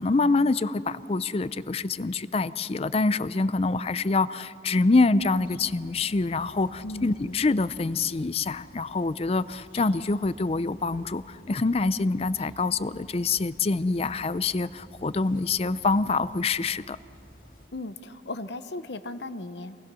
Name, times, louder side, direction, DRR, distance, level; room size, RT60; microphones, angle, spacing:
voice 1, 0.0-17.0, left 3 dB, 35° left, 16 dB, 0.4 m, -25 dB
sound 1, 5.2-17.7, left 1 dB, 50° left, 2.2 m, -52 dB
voice 2, 6.8-7.4 17.7-19.8, left 2 dB, 65° left, 12 dB, 0.9 m, -37 dB
27.5 x 20.5 x 6.2 m, 2.5 s
head